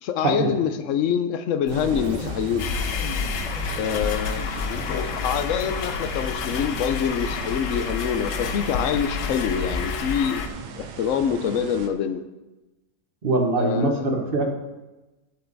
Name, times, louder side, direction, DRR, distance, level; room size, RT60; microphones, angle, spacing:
voice 1, 0.0-2.7 3.8-10.5 10.8-12.2 13.6-14.1, left 8 dB, 60° left, 10 dB, 0.8 m, -26 dB
sound 1, 1.7-9.8, left 1 dB, 25° left, 1.9 m, -37 dB
sound 2, 1.7-11.9, right 6 dB, 85° right, 1.4 m, -39 dB
sound 3, 2.6-10.5, left 6 dB, 85° left, 1.4 m, -29 dB
voice 2, 13.2-14.5, right 2 dB, 35° right, 3 dB, 1.2 m, -22 dB
10.5 x 7.6 x 4.0 m, 1.1 s
omnidirectional pair, 1.8 m